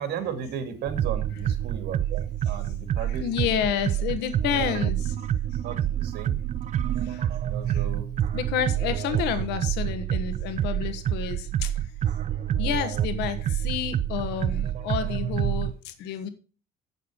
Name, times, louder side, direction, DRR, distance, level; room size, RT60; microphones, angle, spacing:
voice 1, 0.0-3.5 5.6-6.4 7.4-8.0, right 7 dB, 75° right, 8 dB, 2.3 m, -35 dB
sound 1, 0.9-15.7, right 10 dB, 45° right, 0.5 m, -28 dB
voice 2, 3.0-5.1 7.1-7.2 7.7-7.8 8.3-11.7 12.6-16.3, left 9 dB, 90° left, 10 dB, 1.4 m, -30 dB
8.1 x 6.9 x 6.1 m, 0.36 s
cardioid pair, 110°, 17 cm